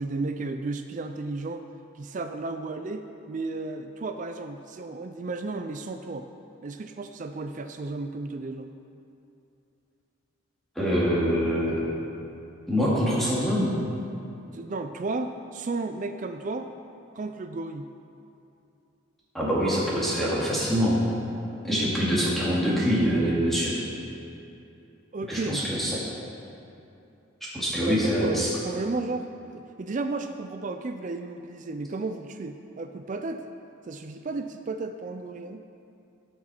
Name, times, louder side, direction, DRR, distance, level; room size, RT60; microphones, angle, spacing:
voice 1, 0.0-1.6 1.9-6.3 6.6-8.7 14.5-16.7 17.2-17.9 25.1-25.9 27.8-33.4 33.9-35.6, right 3 dB, 35° right, 7 dB, 0.4 m, -33 dB
voice 2, 10.8-11.8 12.7-13.7 19.3-21.0 21.6-23.8 25.3-26.0 27.4-28.5, equal, ahead, -8 dB, 2.3 m, -24 dB
17.0 x 6.3 x 4.4 m, 2.7 s
head